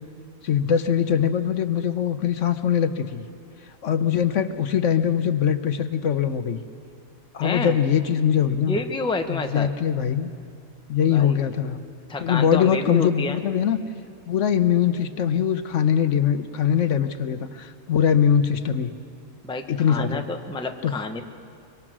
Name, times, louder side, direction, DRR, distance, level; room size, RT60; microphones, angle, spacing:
voice 1, 0.4-3.2 3.8-6.6 7.3-8.8 9.3-10.3 10.9-11.8 12.2-13.8 14.3-19.0 19.7-20.2 20.8-20.9, left 8 dB, 65° left, 10 dB, 1.0 m, -22 dB
voice 2, 7.4-7.8 8.5-9.7 11.1-11.4 12.1-13.4 19.4-21.2, left 2 dB, 5° left, 5 dB, 0.8 m, -29 dB
24.5 x 23.0 x 6.1 m, 2.4 s
omnidirectional pair, 1.4 m